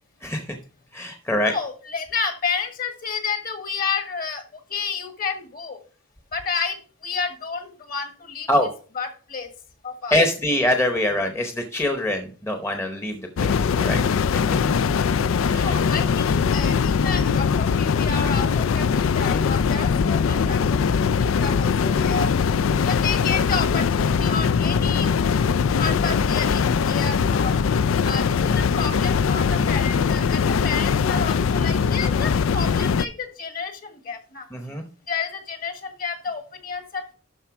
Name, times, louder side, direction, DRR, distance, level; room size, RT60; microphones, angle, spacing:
voice 1, 0.2-0.6 0.9-1.5 8.5-8.7 10.1-14.0 14.3-14.5 15.5-15.8 19.2-19.4 34.5-34.8, left 1 dB, 15° left, 4 dB, 0.8 m, -24 dB
voice 2, 1.4-5.8 6.3-6.8 7.0-8.5 8.9-9.5 9.8-10.2 15.5-22.3 22.8-25.1 25.7-27.6 28.0-34.4 35.1-37.1, left 5 dB, 45° left, 7 dB, 1.6 m, -30 dB
sound 1, 13.4-33.1, left 6 dB, 80° left, 0.4 m, -21 dB
12.0 x 4.3 x 4.6 m, 0.39 s
head